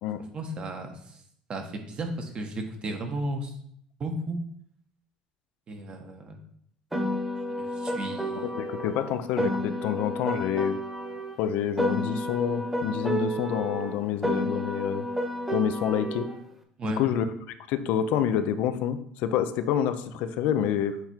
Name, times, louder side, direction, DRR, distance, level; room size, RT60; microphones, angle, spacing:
voice 1, 0.3-1.2 1.5-3.6 4.0-4.4 5.7-6.4 7.5-8.5 16.8-17.0, right 1 dB, 40° right, 4 dB, 1.5 m, -34 dB
Piano, 6.9-11.4 11.8-16.4, equal, 10° right, 1.3 m, -31 dB
voice 2, 8.4-10.8 11.4-15.1 15.5-16.3 16.8-17.3 17.7-21.0, left 9 dB, 75° left, 10 dB, 0.6 m, -28 dB
7.8 x 3.4 x 4.5 m, 0.67 s
supercardioid pair, 90°, 3 cm